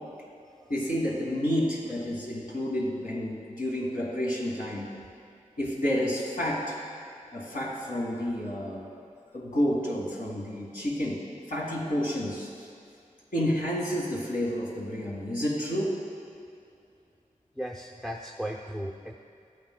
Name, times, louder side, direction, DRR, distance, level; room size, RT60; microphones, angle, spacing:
voice 1, 0.7-4.9 5.6-6.8 7.3-8.9 9.3-11.2 11.5-12.5 13.3-16.0, equal, 80° left, -4 dB, 2.0 m, -30 dB
voice 2, 17.6-19.1, equal, 5° left, 1 dB, 0.5 m, -36 dB
13.5 x 8.5 x 2.2 m, 2.5 s
wide cardioid pair, 50°, 14 cm